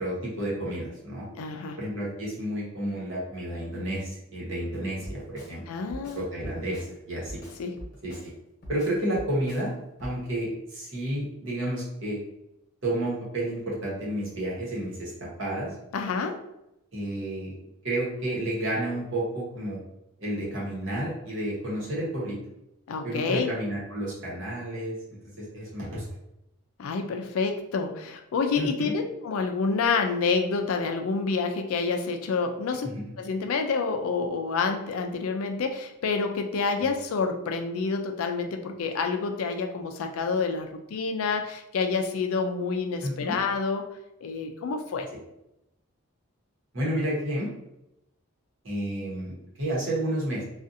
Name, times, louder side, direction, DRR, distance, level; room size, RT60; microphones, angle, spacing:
voice 1, 0.0-1.3 1.8-5.6 6.1-7.4 8.0-8.2 8.7-9.7 10.0-12.2 12.8-15.7 16.9-17.5 17.8-19.8 20.2-22.4 23.0-26.0 28.5-28.9 32.8-33.1 36.8-36.9 43.0-43.4 46.7-47.5 48.6-50.4, right 1 dB, 55° right, -6 dB, 1.0 m, -31 dB
voice 2, 1.3-1.8 5.7-6.3 7.6-7.8 15.9-16.4 22.9-23.5 26.8-32.9 33.2-43.9 44.2-45.1, left 4 dB, 75° left, 5 dB, 0.4 m, -28 dB
Drum kit, 5.0-5.6 5.9-6.9 7.2-8.3 8.6-9.7 10.0-10.2, equal, 45° left, 1.0 m, -42 dB
2.5 x 2.4 x 2.6 m, 0.86 s
head